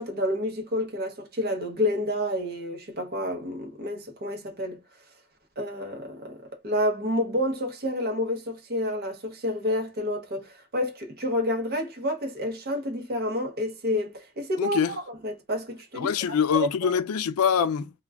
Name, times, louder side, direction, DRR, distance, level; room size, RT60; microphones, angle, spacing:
voice 1, 0.0-4.8 5.6-6.4 6.6-14.8 15.2-16.1 16.5-16.9, left 1 dB, 45° right, 0.7 m, -29 dB
voice 2, 14.6-15.0 16.0-17.9, left 7 dB, 80° left, 0.4 m, -24 dB
2.3 x 2.2 x 3.3 m
head